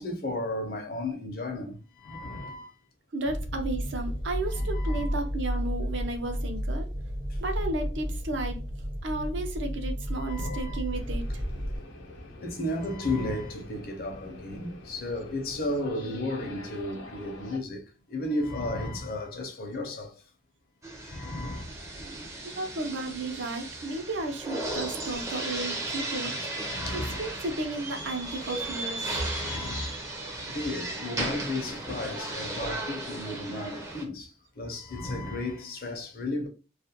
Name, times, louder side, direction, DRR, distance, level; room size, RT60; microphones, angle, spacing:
voice 1, 0.0-2.7 4.5-5.0 10.2-10.8 12.4-20.1 21.0-21.8 26.6-27.4 29.3-30.0 30.5-34.3 34.6-36.5, left 2 dB, 50° left, 0.6 m, -34 dB
voice 2, 2.4-2.7 3.1-6.9 7.4-8.6 9.0-11.4 22.5-26.5 26.9-29.1, right 2 dB, 75° right, 0.6 m, -33 dB
sound 1, 3.2-11.8, equal, 60° right, 1.0 m, -32 dB
sound 2, 10.9-17.6, left 1 dB, 90° left, 0.7 m, -46 dB
sound 3, 20.8-34.0, right 2 dB, 15° right, 0.4 m, -35 dB
2.4 x 2.1 x 2.7 m
head